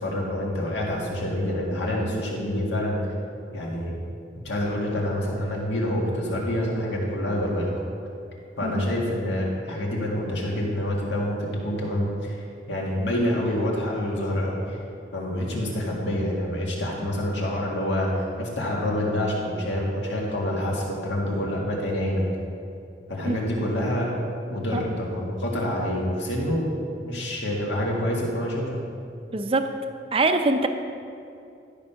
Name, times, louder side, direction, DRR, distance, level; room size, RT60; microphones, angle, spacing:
voice 1, 0.0-3.0 3.5-3.9 4.4-7.7 8.6-12.4 12.7-14.8 15.1-22.2 23.1-24.1 24.5-28.8, left 1 dB, 75° left, -3 dB, 1.9 m, -27 dB
voice 2, 29.3-29.7 30.1-30.7, right 2 dB, 30° right, 7 dB, 0.5 m, -23 dB
12.0 x 5.3 x 5.7 m, 2.6 s
head